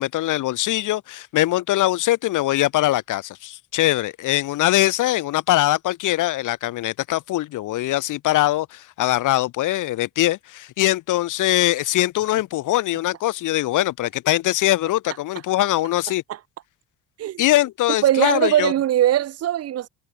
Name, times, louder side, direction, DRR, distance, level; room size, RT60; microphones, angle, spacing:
voice 1, 0.0-16.2 17.4-18.7, left 15 dB, 75° left, 6.9 m, -22 dB
voice 2, 18.0-19.9, right 12 dB, 50° right, 2.1 m, -20 dB
cardioid pair, 175°, 31 cm